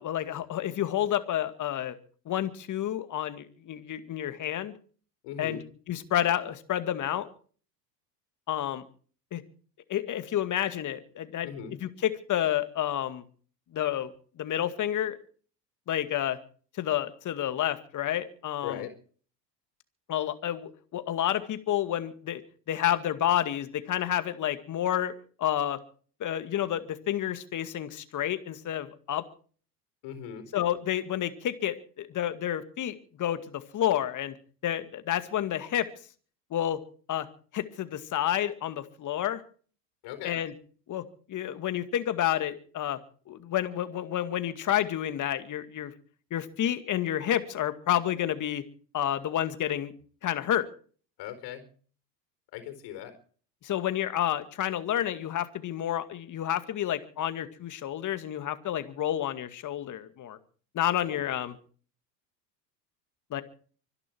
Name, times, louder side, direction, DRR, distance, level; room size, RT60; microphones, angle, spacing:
voice 1, 0.0-2.0 2.3-4.7 5.4-5.6 5.9-7.3 8.5-8.8 9.3-9.4 9.9-13.2 13.7-14.1 14.4-15.2 15.9-16.4 16.8-18.8 20.1-22.4 22.7-25.1 25.4-25.8 26.2-29.2 30.5-34.3 34.6-35.9 36.5-36.8 37.1-37.3 37.5-39.4 40.2-40.5 40.9-43.0 43.3-45.9 46.3-48.6 48.9-49.9 50.2-50.7 53.6-60.4 60.7-61.6 63.3-63.4, left 11 dB, 35° left, 10 dB, 2.2 m, -30 dB
voice 2, 5.2-5.6 11.4-11.7 18.6-18.9 30.0-30.5 40.0-40.4 51.2-51.6 52.5-53.2 61.1-61.4, left 9 dB, 55° left, 10 dB, 4.5 m, -39 dB
25.0 x 11.0 x 4.6 m, 0.43 s
hypercardioid pair, 80°, 50 cm